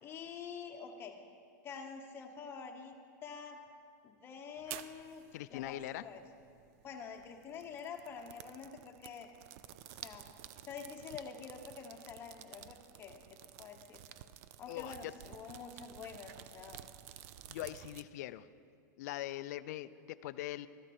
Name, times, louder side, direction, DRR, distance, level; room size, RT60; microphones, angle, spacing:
voice 1, 0.0-1.1 1.6-2.9 3.2-3.6 4.0-5.2 5.5-6.2 6.8-9.3 9.9-10.2 10.7-13.2 13.6-14.0 14.6-16.8, left 6 dB, 25° left, 3 dB, 1.1 m, -47 dB
sound 1, 4.6-18.0, right 12 dB, 50° right, 0.5 m, -52 dB
voice 2, 5.3-6.1 14.7-15.1 17.5-18.5 19.0-20.7, left 14 dB, 60° left, 15 dB, 0.4 m, -41 dB
13.5 x 12.0 x 4.4 m, 2.3 s
supercardioid pair, 150°, 10 cm